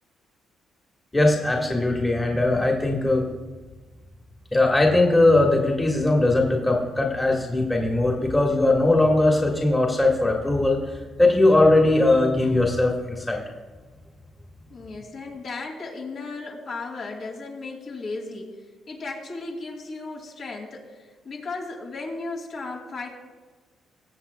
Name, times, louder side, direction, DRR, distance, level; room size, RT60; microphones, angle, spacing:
voice 1, 1.1-3.2 4.5-10.8 11.2-13.4, left 2 dB, 15° left, -1 dB, 1.5 m, -20 dB
voice 2, 14.7-23.1, left 3 dB, 65° left, -2 dB, 2.5 m, -35 dB
20.0 x 7.4 x 2.3 m, 1.4 s
cardioid pair, 90°, 0 cm